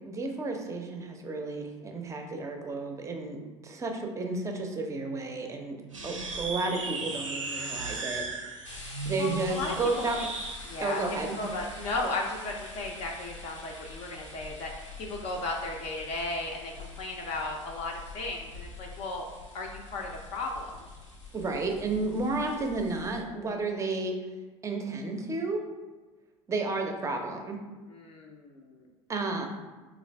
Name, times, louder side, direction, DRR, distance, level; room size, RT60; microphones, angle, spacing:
voice 1, 0.0-5.8 6.0-8.8 9.0-10.2 10.8-11.4 21.3-24.1 24.6-25.6 26.5-27.6 29.1-29.5, right 3 dB, 20° right, 3 dB, 0.5 m, -32 dB
sound 1, 5.9-10.6, right 3 dB, 85° right, 0.6 m, -36 dB
sound 2, 8.6-23.2, left 3 dB, 85° left, 0.9 m, -45 dB
voice 2, 9.2-10.3 10.6-14.7 15.0-19.2 19.5-20.8 27.9-28.9, left 2 dB, 40° left, 0 dB, 0.5 m, -35 dB
3.9 x 2.4 x 3.2 m, 1.3 s
figure-of-eight pair, 75°, 16 cm